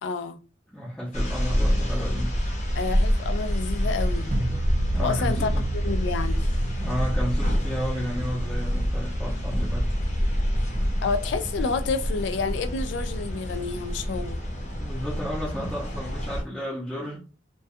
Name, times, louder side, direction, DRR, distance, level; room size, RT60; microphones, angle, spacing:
voice 1, 0.0-0.4 2.7-4.3 5.0-6.5 11.0-14.4, left 4 dB, 65° left, 0.3 m, -29 dB
voice 2, 0.7-2.3 4.9-5.7 6.8-9.9 14.8-17.2, equal, ahead, 0.6 m, -32 dB
sound 1, 1.1-16.4, equal, 35° left, 0.7 m, -27 dB
sound 2, 4.3-9.3, right 2 dB, 35° right, 0.3 m, -34 dB
2.2 x 2.2 x 2.6 m
head